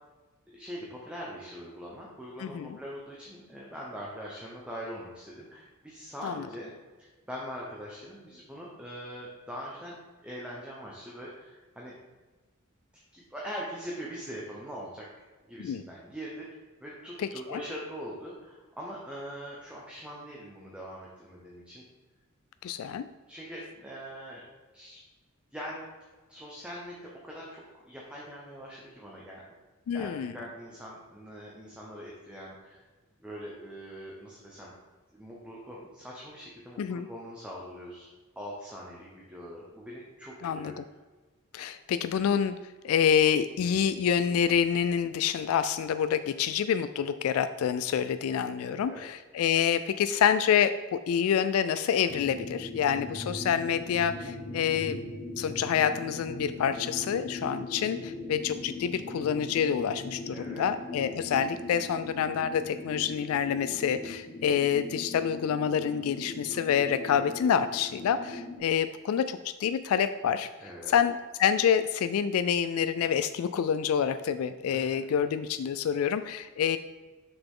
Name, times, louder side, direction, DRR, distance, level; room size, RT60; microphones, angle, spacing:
voice 1, 0.5-6.7 7.3-10.0 10.2-11.9 13.1-15.0 15.5-16.5 16.8-21.8 23.3-24.4 24.7-25.0 25.5-25.8 26.3-29.4 29.9-32.9 33.2-34.7 35.1-38.1 38.4-40.8 48.6-49.0 60.3-60.7 70.6-71.0 74.7-75.0, equal, 5° right, -4 dB, 0.9 m, -42 dB
voice 2, 2.4-2.8 6.2-6.5 15.6-15.8 17.2-17.6 22.6-23.1 29.9-30.3 36.8-37.1 40.4-40.8 41.5-42.6 42.8-55.0 55.4-70.5 70.9-76.8, left 8 dB, 75° left, 12 dB, 0.3 m, -27 dB
sound 1, 52.1-68.6, left 1 dB, 45° left, 1.0 m, -40 dB
6.8 x 5.9 x 3.7 m, 1.3 s
head